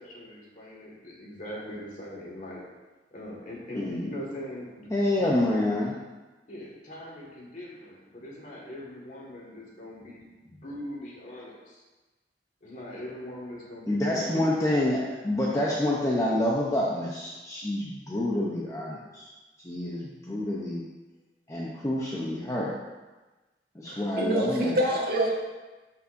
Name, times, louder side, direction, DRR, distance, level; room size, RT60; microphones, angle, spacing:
voice 1, 0.0-2.7 3.1-5.6 6.5-11.8 12.6-14.6, left 1 dB, 45° left, -3 dB, 2.0 m, -41 dB
voice 2, 3.8-4.1 4.9-5.9 13.9-19.3 19.6-20.8 21.5-22.8 23.7-24.7, left 1 dB, 15° left, -5 dB, 0.8 m, -27 dB
voice 3, 23.9-25.3, right 1 dB, 55° right, -2 dB, 1.5 m, -26 dB
12.5 x 5.5 x 2.7 m, 1.2 s
head